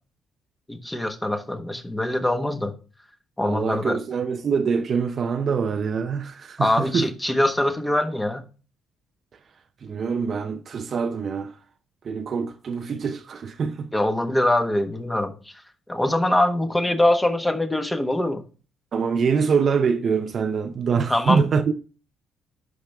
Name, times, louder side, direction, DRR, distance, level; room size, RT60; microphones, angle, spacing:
voice 1, 0.7-2.7 3.4-4.0 6.6-8.4 13.9-15.3 15.9-18.4 21.1-21.4, left 1 dB, 10° left, 1.3 m, -23 dB
voice 2, 3.4-7.1 9.8-11.5 12.0-13.9 18.9-21.7, right 5 dB, 50° right, 0.7 m, -24 dB
11.5 x 5.2 x 3.4 m
cardioid pair, 105°, 0 cm